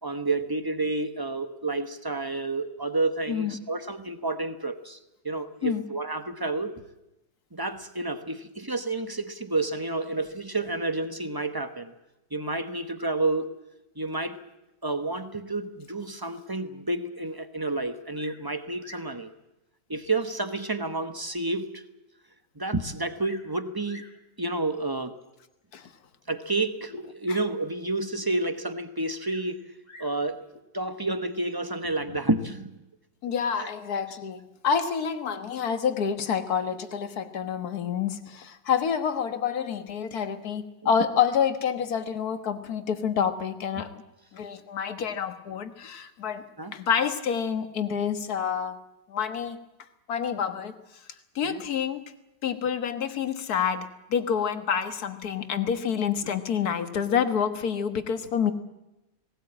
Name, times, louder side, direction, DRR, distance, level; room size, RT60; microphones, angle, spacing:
voice 1, 0.0-5.0 5.2-6.7 7.5-11.9 12.3-13.5 14.0-14.4 14.8-19.3 19.9-21.8 22.6-24.0 24.4-25.2 26.3-29.6 30.0-30.4 30.7-32.7 33.6-33.7 46.6-46.7 51.4-51.6, right 2 dB, 15° right, 10 dB, 0.8 m, -30 dB
Bird vocalization bird call bird song, 18.1-18.5 18.8-19.2 20.0-20.1 20.8-20.9 21.4-21.5 21.7-21.8 22.8-23.5 23.8-24.2 25.2-25.5 29.2-30.2 31.3-31.7, left 1 dB, 25° left, 2.1 m, -50 dB
voice 2, 33.2-44.0 44.3-46.4 46.7-48.8 49.1-49.6 50.1-50.8 51.4-52.0 52.4-58.5, left 7 dB, 60° left, 9 dB, 1.8 m, -28 dB
19.0 x 18.0 x 8.7 m, 0.93 s
omnidirectional pair, 1.9 m